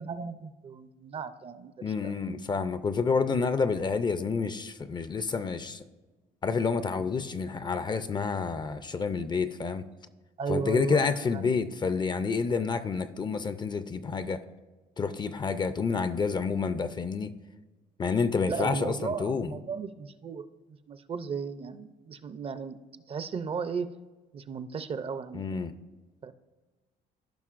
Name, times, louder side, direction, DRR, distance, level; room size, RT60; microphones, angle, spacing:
voice 1, 0.0-2.1 10.4-11.4 18.5-22.8 23.1-23.9 24.3-25.6 26.2-26.3, right 5 dB, 35° right, 12 dB, 0.5 m, -35 dB
voice 2, 1.8-5.8 6.4-9.9 10.5-14.4 15.0-17.3 18.0-19.5 25.3-25.7, left 5 dB, 25° left, 12 dB, 0.4 m, -29 dB
15.5 x 5.5 x 2.5 m, 1.3 s
cardioid pair, 110°, 17 cm